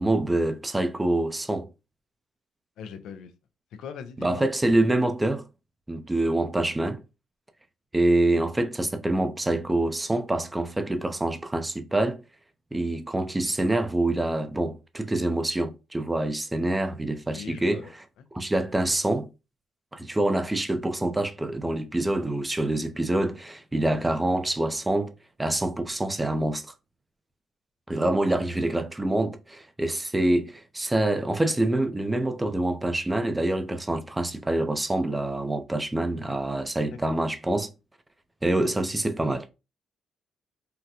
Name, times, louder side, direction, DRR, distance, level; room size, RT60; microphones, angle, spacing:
voice 1, 0.0-1.7 4.2-5.4 5.9-7.0 7.9-12.2 12.7-18.0 18.3-19.3 19.9-25.1 25.4-26.6 27.9-37.7 38.4-39.4, right 1 dB, 15° right, 0.5 m, -26 dB
voice 2, 2.8-3.3 3.8-4.5 17.3-17.9 37.0-37.2, left 7 dB, 80° left, 0.5 m, -40 dB
3.8 x 2.1 x 2.8 m
cardioid pair, 90°, 0 cm